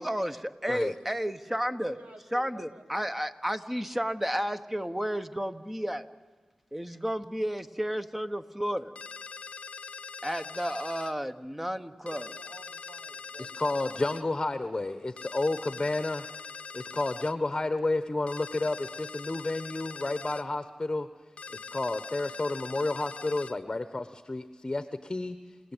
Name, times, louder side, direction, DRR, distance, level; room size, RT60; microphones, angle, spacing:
voice 1, 0.0-1.9 2.3-6.1 6.7-8.9 10.2-12.3, equal, 10° right, 9 dB, 1.3 m, -32 dB
voice 2, 1.6-3.1 11.9-13.6, right 3 dB, 80° right, 5 dB, 2.5 m, -51 dB
sound 1, 9.0-11.1 12.1-14.2 15.2-17.4 18.3-20.5 21.4-23.6, left 5 dB, 70° left, 0.8 m, -43 dB
voice 3, 13.4-16.2 16.7-21.1 21.5-25.4, left 2 dB, 30° left, 10 dB, 1.1 m, -31 dB
29.0 x 17.0 x 9.1 m, 1.4 s
cardioid pair, 50°, 2 cm